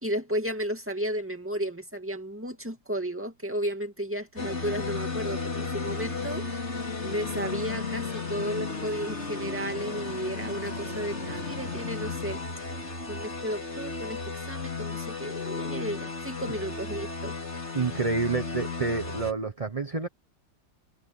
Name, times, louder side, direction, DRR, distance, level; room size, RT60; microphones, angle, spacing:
voice 1, 0.0-6.4 7.0-12.4 13.1-17.3, equal, 5° right, 2.2 m, -33 dB
sound 1, 4.4-19.3, left 4 dB, 35° left, 4.2 m, -34 dB
voice 2, 17.7-20.1, right 4 dB, 25° right, 0.9 m, -28 dB
omnidirectional pair, 2.1 m